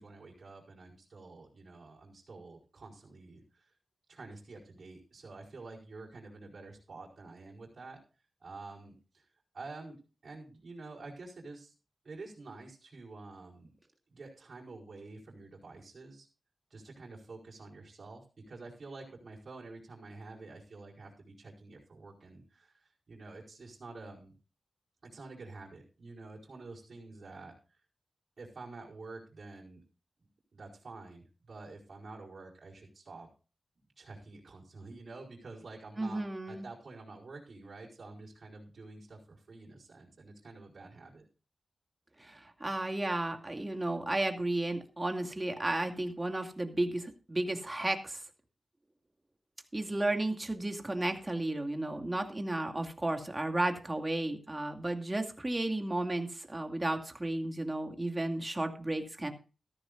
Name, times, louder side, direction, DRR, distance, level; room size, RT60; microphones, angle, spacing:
voice 1, 0.0-3.7 4.1-8.0 8.4-9.3 9.5-10.0 10.2-11.7 12.0-13.7 14.1-16.3 16.7-24.3 25.0-27.8 28.4-29.8 30.5-33.3 34.0-41.3, right 3 dB, 60° right, -5 dB, 4.9 m, -49 dB
voice 2, 36.0-36.6 42.2-48.2 49.7-59.3, right 1 dB, 25° right, 4 dB, 2.5 m, -33 dB
14.5 x 14.0 x 2.6 m, 0.34 s
cardioid pair, 55°, 0 cm